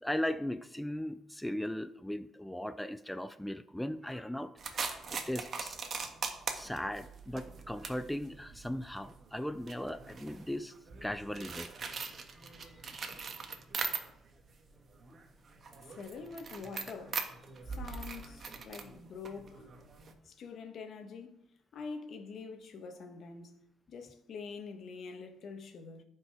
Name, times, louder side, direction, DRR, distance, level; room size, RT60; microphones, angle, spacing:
voice 1, 0.0-5.8 6.5-10.7 11.0-12.1 12.9-13.0, left 1 dB, 5° left, 0.5 m, -38 dB
sound 1, 4.6-14.4 14.7-20.1, right 5 dB, 50° right, 1.5 m, -41 dB
voice 2, 15.8-17.2 17.7-19.7 20.2-21.4 21.7-23.5 23.9-26.0, left 5 dB, 65° left, 1.6 m, -45 dB
15.5 x 5.4 x 4.9 m
cardioid pair, 90°, 0 cm